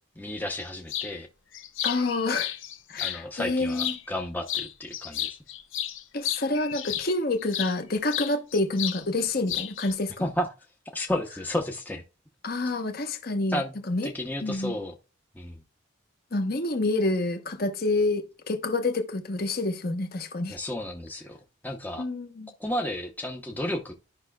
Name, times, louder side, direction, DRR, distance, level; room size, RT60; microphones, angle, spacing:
voice 1, 0.2-1.3 2.9-5.4 10.2-10.5 10.9-12.0 13.5-13.7 14.0-14.9 15.3-15.6 20.5-21.4 21.6-22.0 22.6-23.9, left 1 dB, 10° left, 0.7 m, -32 dB
sound 1, 0.9-1.1 1.5-3.2 3.7-4.2 4.5-7.7 8.1-9.0 9.3-9.9, left 11 dB, 75° left, 0.8 m, -32 dB
voice 2, 1.8-2.6 2.9-3.9 6.1-10.3 12.4-13.6 13.9-14.1 14.4-14.7 16.3-20.6 22.0-22.5, left 2 dB, 50° left, 1.0 m, -28 dB
12.5 x 5.5 x 2.3 m
head